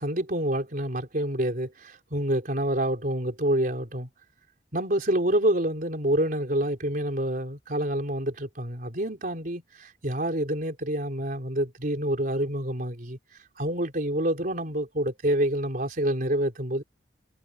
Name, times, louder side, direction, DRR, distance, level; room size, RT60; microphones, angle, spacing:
voice 1, 0.0-4.1 4.7-13.2 13.6-16.8, right 1 dB, 50° right, 4.1 m, -27 dB
head